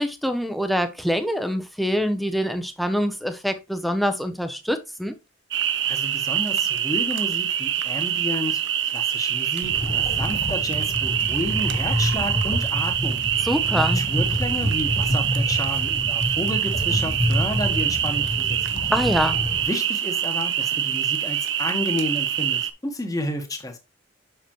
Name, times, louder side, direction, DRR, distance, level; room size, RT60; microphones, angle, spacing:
voice 1, 0.0-5.1 13.4-14.0 18.9-19.4, equal, ahead, 0.7 m, -25 dB
sound 1, 5.5-22.7, right 10 dB, 60° right, 0.7 m, -25 dB
voice 2, 5.9-13.2 13.7-18.9 19.7-23.8, left 1 dB, 15° left, 1.3 m, -31 dB
sound 2, 9.6-19.6, equal, 35° left, 2.0 m, -27 dB
6.8 x 6.7 x 3.0 m
head